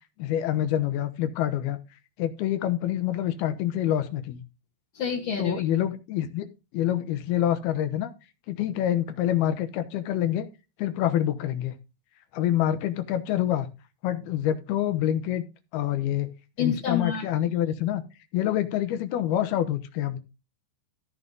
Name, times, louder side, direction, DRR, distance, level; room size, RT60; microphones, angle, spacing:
voice 1, 0.2-1.8 2.2-4.4 5.4-6.5 6.7-8.1 8.5-10.5 10.8-11.8 12.3-13.7 14.0-15.4 15.7-16.3 16.6-18.0 18.3-20.2, left 11 dB, 75° left, 10 dB, 2.5 m, -26 dB
voice 2, 4.9-5.6 16.6-17.3, left 7 dB, 50° left, -3 dB, 2.1 m, -28 dB
15.0 x 5.6 x 3.8 m, 0.29 s
omnidirectional pair, 5.2 m